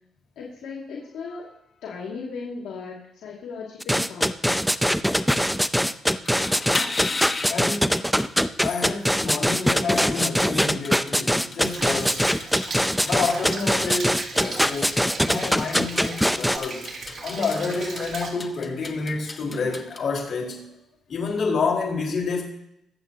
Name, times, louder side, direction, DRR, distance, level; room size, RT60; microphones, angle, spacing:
voice 1, 0.4-4.6, left 4 dB, 80° left, -3 dB, 2.2 m, -37 dB
sound 1, 3.8-16.6, equal, ahead, 0.5 m, -22 dB
sound 2, 6.2-20.0, left 3 dB, 30° left, 1.1 m, -36 dB
voice 2, 7.5-8.1 8.6-12.2 13.0-16.8 17.2-20.7 21.1-22.4, left 4 dB, 50° left, -1 dB, 4.4 m, -28 dB
Rain, 11.6-18.3, right 3 dB, 45° right, 3.1 m, -36 dB
23.0 x 7.7 x 2.8 m, 0.80 s
cardioid pair, 90°, 0 cm